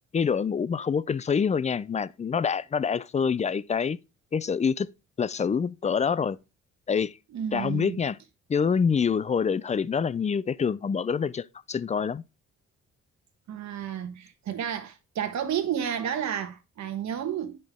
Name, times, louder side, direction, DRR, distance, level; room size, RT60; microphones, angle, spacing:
voice 1, 0.1-4.0 4.3-4.9 5.2-6.4 6.9-7.1 7.5-8.2 8.5-12.2, left 6 dB, 25° left, 0.4 m, -26 dB
voice 2, 7.3-8.0 13.5-17.6, right 9 dB, 65° right, 1.3 m, -31 dB
9.3 x 5.3 x 3.6 m
cardioid pair, 90°, 30 cm